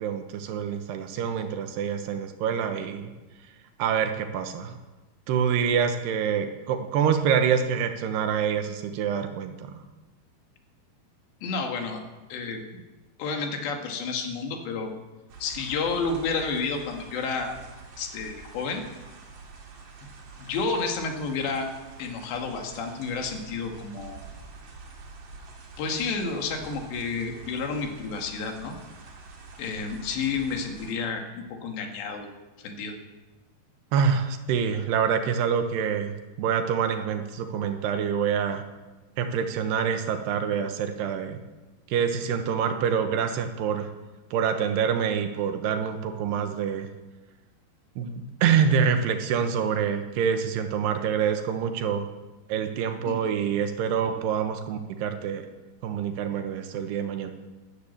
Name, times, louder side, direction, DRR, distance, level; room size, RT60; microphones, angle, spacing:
voice 1, 0.0-3.1 3.8-4.8 5.3-9.8 33.9-36.1 36.4-38.6 39.2-41.4 41.9-43.9 44.3-46.9 48.0-52.1 52.5-55.5 55.8-57.3, right 7 dB, 75° right, 7 dB, 3.2 m, -26 dB
voice 2, 11.4-12.0 12.3-12.6 13.2-14.9 15.4-17.6 18.0-18.8 20.4-21.7 22.0-24.2 25.8-28.8 29.6-32.3 32.6-32.9 53.1-53.3 54.0-54.1, left 4 dB, 85° left, 3 dB, 4.2 m, -30 dB
sound 1, 15.3-30.9, right 4 dB, 55° right, 3.7 m, -46 dB
13.5 x 12.0 x 8.5 m, 1.2 s
omnidirectional pair, 4.9 m